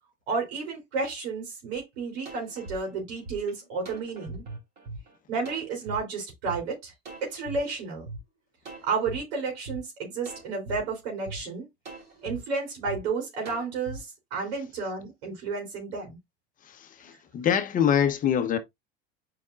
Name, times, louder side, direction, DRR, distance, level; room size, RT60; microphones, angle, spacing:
voice 1, 0.3-4.4 5.3-6.9 7.2-8.0 8.8-11.7 12.2-16.2, right 4 dB, 85° right, 3.4 m, -32 dB
sound 1, 1.8-1.9 2.3-6.0 6.5-6.6 7.1-8.2 8.6-9.2 9.7-9.8 10.3-10.8 11.3-11.4 11.9-12.4 12.9-13.0 13.5-14.0, right 3 dB, 35° right, 3.0 m, -41 dB
voice 2, 16.7-18.6, left 9 dB, 25° left, 0.9 m, -25 dB
8.2 x 5.0 x 2.4 m
supercardioid pair, 145°, 30 cm